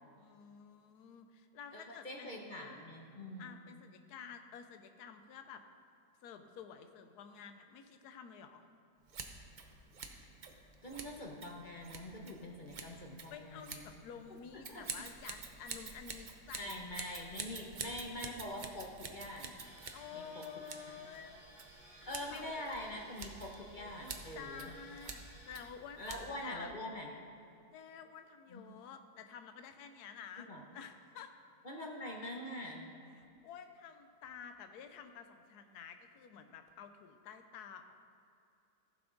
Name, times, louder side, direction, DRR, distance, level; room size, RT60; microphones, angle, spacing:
voice 1, 0.2-2.4 3.4-5.6 6.2-8.6 13.3-16.7 19.9-22.4 24.3-26.7 27.7-31.3 33.2-37.9, left 7 dB, 70° left, 8 dB, 1.2 m, -51 dB
voice 2, 1.7-3.6 10.8-14.0 14.7-14.8 16.6-19.6 20.1-20.4 20.9-21.0 22.1-24.7 26.0-27.1 28.5-28.6 30.4-30.6 31.6-32.9, left 1 dB, 35° left, 0 dB, 0.8 m, -44 dB
Scissors, 9.1-26.6, right 4 dB, 60° right, 0.5 m, -49 dB
sound 1, 19.6-25.7, right 1 dB, 90° left, 3.3 m, -58 dB
15.0 x 7.0 x 3.9 m, 2.6 s
omnidirectional pair, 1.8 m